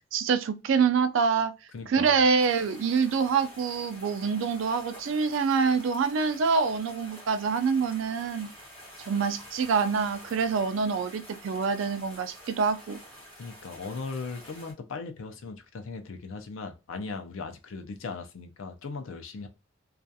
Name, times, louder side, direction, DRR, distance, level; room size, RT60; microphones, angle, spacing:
voice 1, 0.1-1.5 1.9-8.5 9.1-13.0, right 5 dB, 70° right, 0.3 m, -26 dB
voice 2, 1.7-2.2 13.4-19.5, left 4 dB, 75° left, 0.5 m, -38 dB
sound 1, 2.4-14.7, equal, 10° left, 1.1 m, -48 dB
2.3 x 2.3 x 2.6 m
head